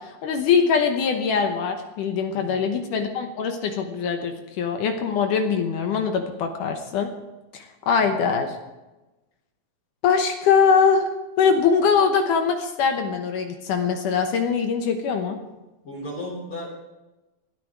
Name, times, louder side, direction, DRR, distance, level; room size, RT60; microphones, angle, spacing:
voice 1, 0.0-7.1 7.5-8.6 10.0-11.1 11.4-15.4, left 6 dB, 70° left, 5 dB, 2.3 m, -22 dB
voice 2, 2.3-2.8 8.0-8.4 15.8-16.7, left 1 dB, 35° left, -2 dB, 4.3 m, -36 dB
20.0 x 12.5 x 4.7 m, 1.1 s
omnidirectional pair, 4.2 m